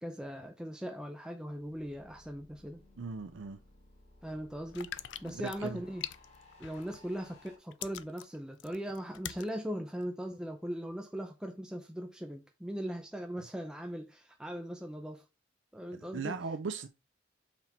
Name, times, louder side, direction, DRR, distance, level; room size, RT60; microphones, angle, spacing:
voice 1, 0.0-2.8 4.2-4.9 5.2-6.0 6.6-15.2 15.7-16.4, equal, 5° right, 0.6 m, -39 dB
sound 1, 1.4-7.5, left 2 dB, 35° left, 2.0 m, -60 dB
voice 2, 3.0-3.6 5.3-5.8 15.9-16.9, right 4 dB, 85° right, 0.6 m, -38 dB
sound 2, 4.7-7.1 7.5-9.5 10.0-10.1, left 11 dB, 70° left, 0.5 m, -43 dB
6.0 x 4.3 x 4.4 m
head